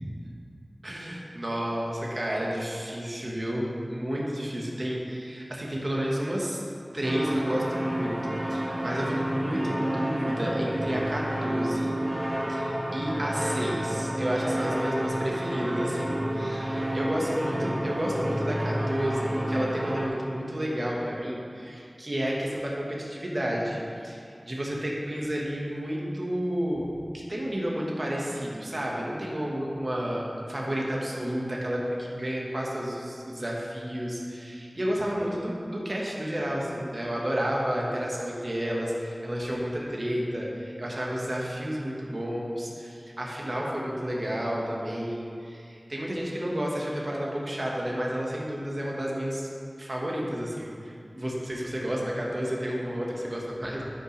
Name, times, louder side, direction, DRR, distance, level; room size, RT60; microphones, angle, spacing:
voice 1, 0.8-6.6 6.9-11.9 12.5-26.8 27.1-49.5 49.8-53.8, equal, 50° right, -3 dB, 1.5 m, -31 dB
sound 1, 7.0-20.1, right 1 dB, 65° right, 1.3 m, -30 dB
12.0 x 5.7 x 3.3 m, 2.4 s
wide cardioid pair, 45°, 0 cm